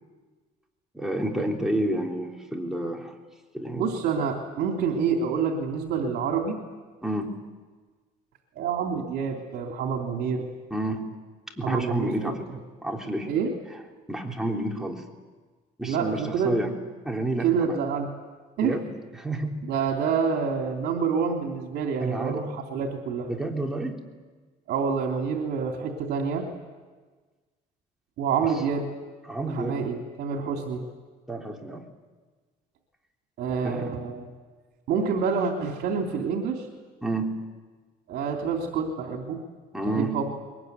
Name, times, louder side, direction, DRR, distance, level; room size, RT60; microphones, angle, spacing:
voice 1, 0.9-3.1 3.5-3.9 7.0-7.3 10.7-11.1 11.6-12.4 12.8-13.3 14.1-15.0 15.8-16.7 17.0-17.8 18.6-18.8 19.2-19.6 22.0-22.5 23.3-24.0 29.3-29.8 31.3-31.8 33.6-33.9 37.0-37.4 39.7-40.2, right 1 dB, 5° right, 0 dB, 3.6 m, -29 dB
voice 2, 3.7-6.6 8.5-10.5 11.6-12.3 13.3-13.5 15.8-16.5 17.4-18.1 18.6-18.8 19.6-23.3 24.7-26.5 28.2-28.9 29.5-30.8 33.4-34.3 34.9-36.7 38.1-39.4 39.9-40.2, right 6 dB, 75° right, 2 dB, 3.2 m, -27 dB
22.5 x 20.5 x 9.6 m, 1.4 s
cardioid pair, 110°, 17 cm